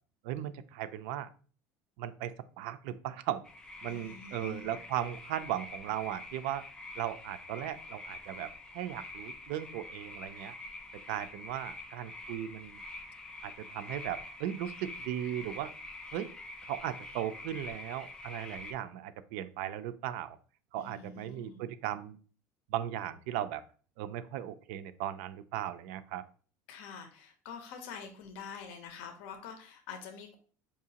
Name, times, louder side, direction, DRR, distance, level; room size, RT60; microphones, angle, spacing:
voice 1, 0.2-1.3 2.0-3.4 3.8-6.6 7.0-10.5 11.1-12.8 13.4-15.7 16.1-16.3 16.7-20.4 20.7-22.2 22.7-23.6 24.0-26.2, right 11 dB, 75° right, 12 dB, 0.3 m, -37 dB
sound 1, 3.4-18.7, left 2 dB, 10° left, 0.4 m, -46 dB
voice 2, 3.8-4.8 20.8-21.6 26.7-30.4, left 6 dB, 80° left, 5 dB, 0.7 m, -46 dB
4.7 x 2.8 x 2.7 m, 0.41 s
cardioid pair, 155°, 7 cm